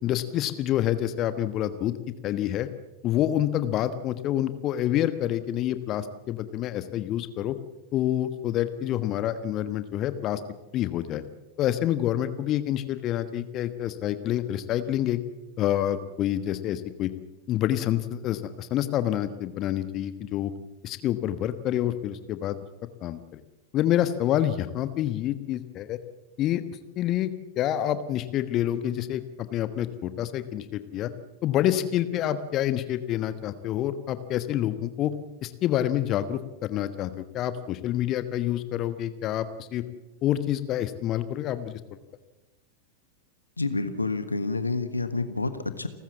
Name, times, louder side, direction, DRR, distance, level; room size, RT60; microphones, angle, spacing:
voice 1, 0.0-1.9 2.2-2.7 3.0-7.5 7.9-10.4 10.7-11.2 11.6-15.2 15.6-17.1 17.5-20.5 20.8-22.6 23.0-23.4 23.7-26.0 26.4-26.6 27.0-31.1 31.4-35.1 35.4-39.8 40.2-42.0, left 12 dB, 35° left, 12 dB, 1.4 m, -27 dB
voice 2, 43.6-45.9, left 3 dB, 80° left, 11 dB, 1.5 m, -28 dB
29.5 x 14.0 x 7.4 m, 1.0 s
figure-of-eight pair, 90°, 0 cm